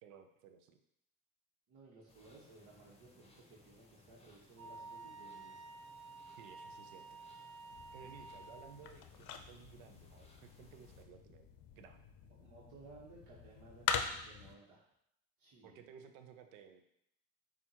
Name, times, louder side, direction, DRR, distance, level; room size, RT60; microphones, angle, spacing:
voice 1, 0.0-0.8 6.4-7.2 7.9-11.5 11.8-12.1 15.6-16.8, right 7 dB, 90° right, 7 dB, 0.6 m, -57 dB
voice 2, 1.7-5.6 7.9-8.1 12.4-14.8 15.4-15.8, right 3 dB, 70° right, -6 dB, 1.3 m, -59 dB
sound 1, 2.1-11.1, left 2 dB, 15° left, 0.9 m, -65 dB
Wind instrument woodwind instrument, 4.6-8.8, right 3 dB, 40° right, 1.0 m, -52 dB
sound 2, 7.7-14.5, left 6 dB, 60° left, 0.6 m, -43 dB
7.1 x 2.5 x 2.9 m, 0.76 s
supercardioid pair, 75°, 38 cm